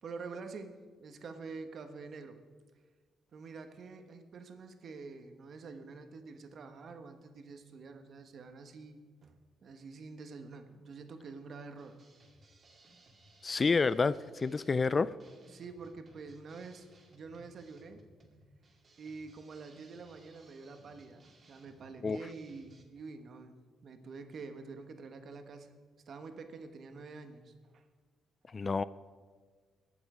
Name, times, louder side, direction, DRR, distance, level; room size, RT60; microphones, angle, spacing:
voice 1, 0.0-2.5 3.3-9.4 9.6-12.0 15.5-18.0 19.0-23.5 23.8-25.7 26.1-27.8, right 4 dB, 55° right, 7 dB, 1.3 m, -47 dB
sound 1, 11.8-22.8, right 1 dB, 35° right, 2.3 m, -62 dB
voice 2, 13.4-15.2 22.0-22.2 28.5-28.8, left 4 dB, 35° left, 17 dB, 0.3 m, -29 dB
20.5 x 7.2 x 5.0 m, 1.5 s
cardioid pair, 90°, 0 cm